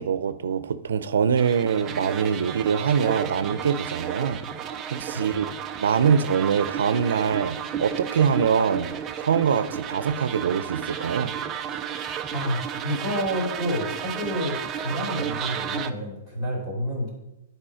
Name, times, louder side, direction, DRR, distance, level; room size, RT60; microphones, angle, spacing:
voice 1, 0.0-4.4 4.9-5.5 5.8-11.3, right 7 dB, 90° right, 12 dB, 0.6 m, -24 dB
sound 1, 1.4-15.9, right 8 dB, 20° right, 0.5 m, -33 dB
voice 2, 12.3-17.1, equal, 15° left, -4 dB, 3.2 m, -29 dB
10.5 x 4.7 x 5.0 m, 0.94 s
hypercardioid pair, 165°, 0 cm